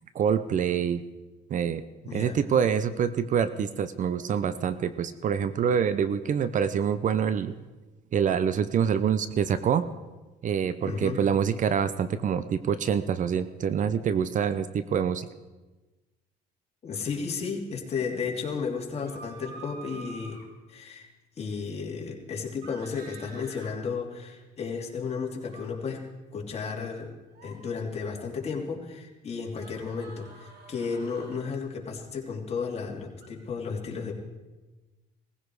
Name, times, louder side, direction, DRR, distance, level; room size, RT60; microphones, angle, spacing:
voice 1, 0.1-1.0 1.5-1.8 2.1-7.6 8.1-9.8 10.4-15.3, right 7 dB, 50° right, 14 dB, 0.8 m, -26 dB
voice 2, 2.0-2.4 10.9-11.2 16.8-20.4 20.7-21.1 21.4-26.0 26.3-27.1 27.4-34.1, left 5 dB, 40° left, -1 dB, 3.2 m, -33 dB
sound 1, 18.9-20.5 22.6-23.7 25.4-25.7 27.3-27.6 29.5-31.4 33.2-33.3, right 4 dB, 70° right, 3.0 m, -47 dB
18.5 x 15.5 x 4.9 m, 1.2 s
cardioid pair, 110°, 17 cm